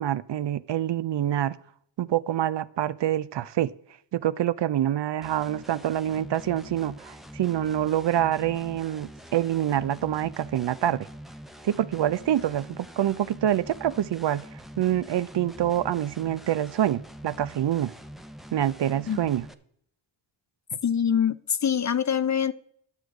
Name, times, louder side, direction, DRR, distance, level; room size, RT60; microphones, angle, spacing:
voice 1, 0.0-1.6 2.0-3.7 4.1-11.1 11.6-17.9 18.5-19.4, right 11 dB, 60° right, 0.5 m, -26 dB
sound 1, 5.2-19.5, equal, ahead, 0.6 m, -45 dB
voice 2, 20.8-22.5, left 8 dB, 40° left, 0.5 m, -24 dB
10.0 x 6.4 x 4.7 m
cardioid pair, 40°, 48 cm